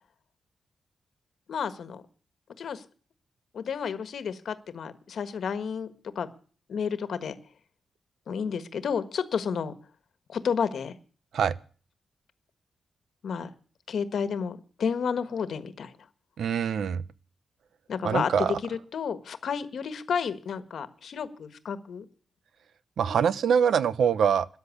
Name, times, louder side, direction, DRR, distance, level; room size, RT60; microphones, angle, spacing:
voice 1, 1.5-2.0 2.6-2.8 3.5-6.3 6.7-7.4 8.3-9.7 10.3-10.9 13.2-13.5 13.9-15.9 17.9-22.0, left 6 dB, 60° left, 12 dB, 1.4 m, -31 dB
voice 2, 16.4-17.0 18.0-18.6 23.0-24.5, right 7 dB, 70° right, 17 dB, 0.8 m, -24 dB
13.5 x 10.5 x 8.4 m, 0.42 s
wide cardioid pair, 175°, 0 cm